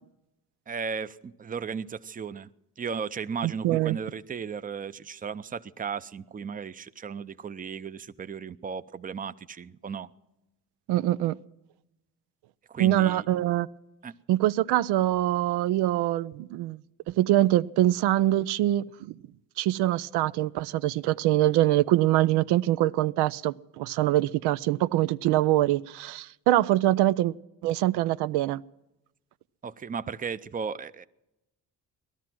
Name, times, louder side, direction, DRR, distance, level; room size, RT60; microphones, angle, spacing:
voice 1, 0.7-2.5 2.8-10.1 12.7-13.3 14.0-14.1 29.6-31.1, right 6 dB, 20° right, 0.6 m, -35 dB
voice 2, 3.4-4.0 10.9-11.4 12.8-13.7 14.3-16.8 17.1-19.1 19.6-27.3 27.6-28.6, right 14 dB, 90° right, 0.5 m, -24 dB
18.5 x 12.5 x 6.1 m
cardioid pair, 90°, 38 cm